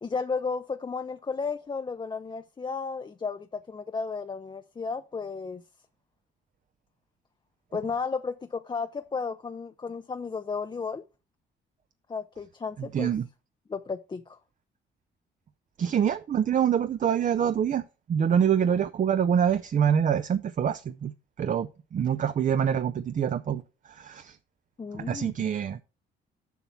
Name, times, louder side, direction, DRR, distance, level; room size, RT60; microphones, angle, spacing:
voice 1, 0.0-5.6 7.7-11.0 12.1-13.1 13.7-14.4 24.8-25.3, left 5 dB, 25° left, 0.5 m, -33 dB
voice 2, 12.9-13.2 15.8-17.8 18.1-21.1 21.4-23.6 23.9-24.4 24.9-25.8, right 8 dB, 40° right, 0.5 m, -25 dB
7.2 x 5.7 x 5.8 m
cardioid pair, 90°, 20 cm